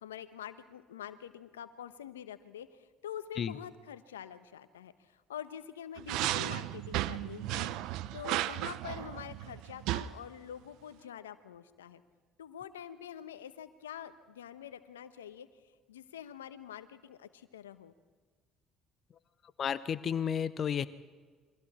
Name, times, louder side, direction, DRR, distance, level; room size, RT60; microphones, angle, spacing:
voice 1, 0.0-2.7 3.0-7.7 8.1-12.0 12.4-15.5 15.9-17.9, left 9 dB, 90° left, 12 dB, 1.0 m, -46 dB
sound 1, 6.0-10.1, right 15 dB, 70° right, 0.7 m, -34 dB
voice 2, 19.6-20.8, left 8 dB, 50° left, 15 dB, 0.9 m, -32 dB
29.0 x 23.5 x 4.3 m, 1.4 s
hypercardioid pair, 60°, 0 cm